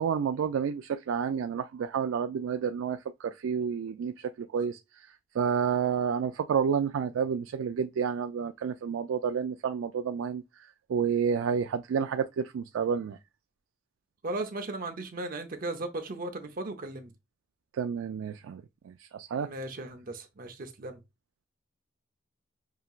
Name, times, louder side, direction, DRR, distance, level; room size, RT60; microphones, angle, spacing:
voice 1, 0.0-4.8 5.4-10.4 10.9-13.2 17.8-19.5, right 7 dB, 85° right, 0.3 m, -30 dB
voice 2, 14.2-17.1 19.4-21.0, right 2 dB, 45° right, 0.7 m, -36 dB
5.7 x 2.9 x 2.4 m
head